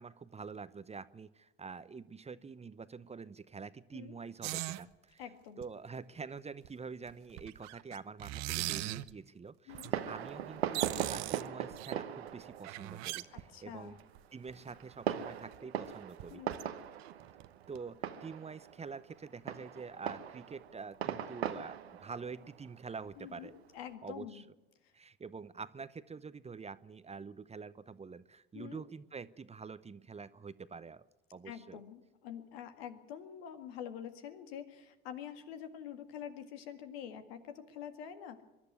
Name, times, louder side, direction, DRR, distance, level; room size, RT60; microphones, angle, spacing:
voice 1, 0.0-5.2 5.6-14.0 14.3-16.4 17.7-23.5 24.0-24.4 24.9-31.1 31.3-31.8, right 5 dB, 20° right, 15 dB, 0.8 m, -46 dB
sound 1, 4.4-4.8 5.6-5.7 6.6-6.7 7.1-9.1 9.8-9.9 10.3-10.4 10.6-11.9 12.5-13.7 14.2-14.3 14.5-14.6 15.5-15.6 15.9-16.0 16.2-16.6 17.0-17.5 17.8-17.9, right 17 dB, 60° right, 0.8 m, -39 dB
voice 2, 5.2-5.6 9.7-9.9 13.3-14.0 16.3-16.6 23.2-24.4 24.8-24.9 28.5-28.8 31.4-38.4, left 9 dB, 75° left, 8 dB, 2.0 m, -46 dB
Fireworks, 9.7-23.8, right 9 dB, 85° right, 1.1 m, -41 dB
23.0 x 11.5 x 9.8 m, 1.1 s
hypercardioid pair, 65°, 31 cm